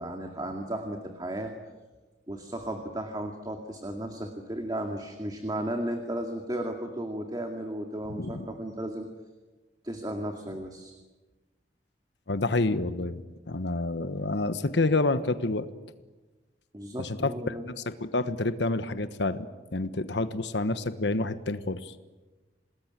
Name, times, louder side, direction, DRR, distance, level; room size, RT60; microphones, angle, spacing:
voice 1, 0.0-1.5 2.3-9.1 9.8-10.9 16.7-17.6, right 1 dB, 25° right, 4 dB, 2.2 m, -34 dB
voice 2, 8.1-8.5 12.3-13.2 13.5-15.7 17.0-17.7 18.0-19.5 19.7-21.9, left 2 dB, 85° left, 11 dB, 1.2 m, -28 dB
27.5 x 20.0 x 9.1 m, 1.2 s
head